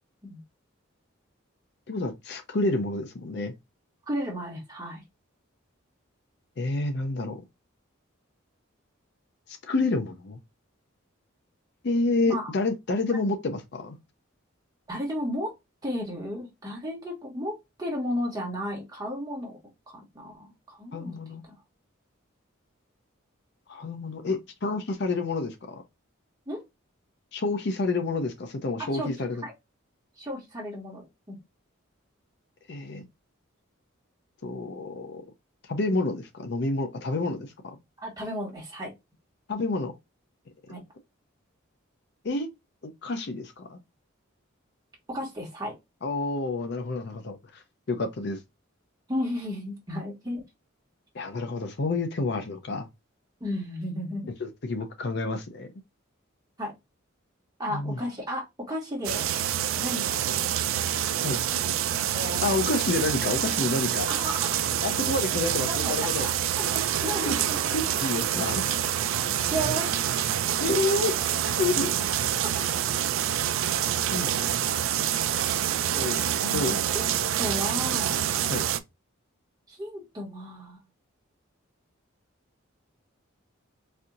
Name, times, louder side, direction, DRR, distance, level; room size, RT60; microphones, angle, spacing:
voice 1, 1.9-3.5 6.6-7.4 9.6-10.4 11.8-14.0 20.9-21.4 23.7-25.8 27.3-29.4 32.7-33.1 34.4-35.2 35.7-37.8 39.5-39.9 42.2-42.5 42.8-43.8 46.0-47.6 47.9-48.4 51.1-52.9 54.4-55.7 57.7-58.0 61.2-61.4 62.4-64.1 64.8-66.3 67.3-67.4 67.7-68.8 70.6-71.9 74.1-74.4 75.9-76.3 76.5-76.7 78.5-78.6, left 3 dB, 55° left, 0.5 m, -29 dB
voice 2, 4.1-5.0 12.3-12.5 13.1-13.2 14.9-15.5 15.8-19.6 19.9-21.1 21.5-21.6 24.2-24.4 26.5-26.6 28.8-29.1 29.4-29.5 30.2-31.4 38.0-38.9 40.7-40.8 45.1-45.7 49.1-50.4 53.4-54.3 56.6-56.7 57.6-59.3 59.8-60.3 62.1-62.5 64.1-64.5 65.7-67.6 69.5-70.0 72.5-72.7 76.4-77.0 77.4-78.2 79.7-80.8, equal, 20° right, 1.4 m, -34 dB
sound 1, 59.0-78.8, right 10 dB, 75° right, 0.4 m, -27 dB
4.2 x 2.7 x 2.4 m
head